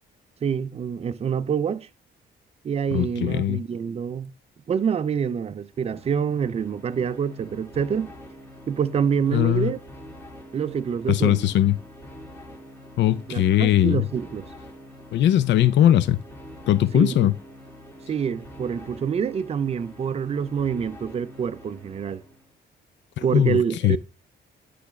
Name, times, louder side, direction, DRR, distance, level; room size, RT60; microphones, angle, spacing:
voice 1, 0.4-1.9 2.6-4.3 4.7-8.1 8.7-9.8 10.5-11.5 13.3-14.5 16.9-17.3 18.1-22.2 23.2-24.0, right 7 dB, 30° right, 0.4 m, -26 dB
voice 2, 2.9-3.6 9.3-9.7 11.1-11.7 13.0-14.1 15.1-16.2 16.7-17.3 23.2-23.6 23.8-24.0, left 12 dB, 65° left, 0.5 m, -20 dB
sound 1, 5.7-22.5, equal, 10° left, 1.9 m, -45 dB
8.2 x 3.3 x 5.8 m
cardioid pair, 90°, 20 cm